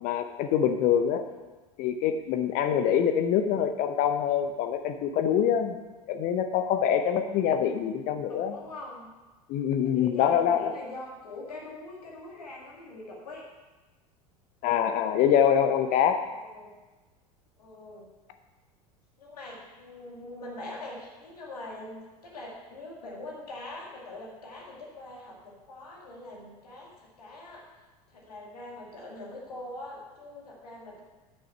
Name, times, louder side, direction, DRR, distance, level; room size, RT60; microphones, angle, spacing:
voice 1, 0.0-1.2 1.8-5.8 6.1-8.5 9.5-10.7 14.6-16.2, left 9 dB, 40° left, 8 dB, 0.7 m, -25 dB
voice 2, 8.3-9.1 9.8-13.4 16.3-16.8 17.6-18.1 19.2-27.7 28.1-31.0, left 2 dB, 70° left, -2 dB, 2.1 m, -43 dB
9.7 x 6.4 x 5.6 m, 1.2 s
figure-of-eight pair, 75°, 21 cm